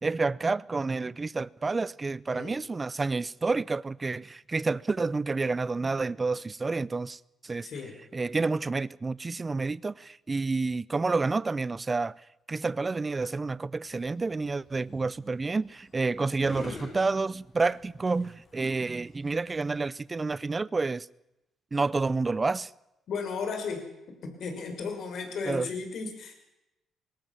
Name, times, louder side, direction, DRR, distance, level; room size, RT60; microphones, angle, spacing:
voice 1, 0.0-7.7 8.1-12.2 12.5-21.1 21.7-22.7 25.5-25.7, right 3 dB, 25° right, 0.6 m, -29 dB
sound 1, 13.8-19.9, left 3 dB, 50° left, 7.8 m, -47 dB
voice 2, 23.1-23.9 24.2-26.3, left 5 dB, 65° left, 5.6 m, -35 dB
21.5 x 18.5 x 7.3 m
cardioid pair, 90°, 0 cm